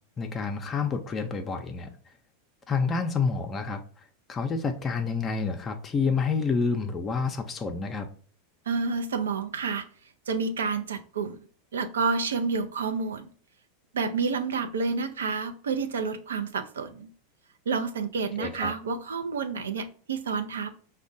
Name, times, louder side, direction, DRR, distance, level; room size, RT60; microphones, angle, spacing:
voice 1, 0.2-1.9 2.7-8.1 18.4-18.7, left 5 dB, 30° left, 6 dB, 0.4 m, -29 dB
voice 2, 8.7-9.8 10.3-11.4 11.7-13.3 13.9-17.1 17.7-20.7, right 4 dB, 85° right, 8 dB, 0.4 m, -29 dB
5.1 x 2.1 x 2.6 m, 0.43 s
hypercardioid pair, 100°, 0 cm